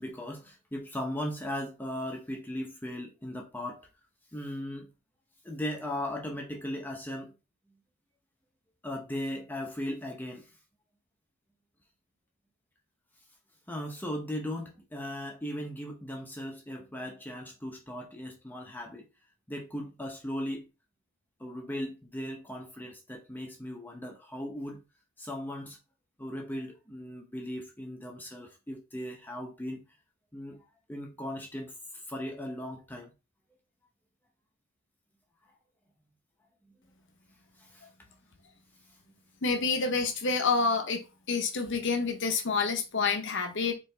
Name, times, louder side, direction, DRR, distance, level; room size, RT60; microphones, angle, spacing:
voice 1, 0.0-3.9 4.3-4.9 5.4-7.3 8.8-10.5 13.7-19.1 19.5-20.7 21.4-24.8 25.2-25.8 26.2-29.8 30.3-30.6 30.9-33.1 37.6-37.9, left 1 dB, 10° left, 0.7 m, -37 dB
voice 2, 39.4-41.0 41.3-43.7, left 4 dB, 60° left, 0.8 m, -28 dB
4.4 x 3.0 x 3.3 m
head